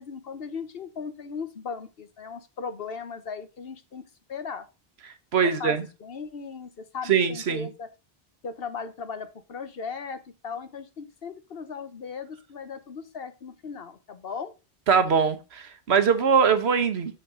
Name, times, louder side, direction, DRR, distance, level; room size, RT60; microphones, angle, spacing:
voice 1, 0.0-4.7 5.4-7.9 8.4-14.5, left 5 dB, 65° left, 1.2 m, -37 dB
voice 2, 5.3-5.8 7.1-7.7 14.9-17.2, right 6 dB, 90° right, 1.3 m, -22 dB
6.8 x 6.4 x 3.7 m
omnidirectional pair, 1.0 m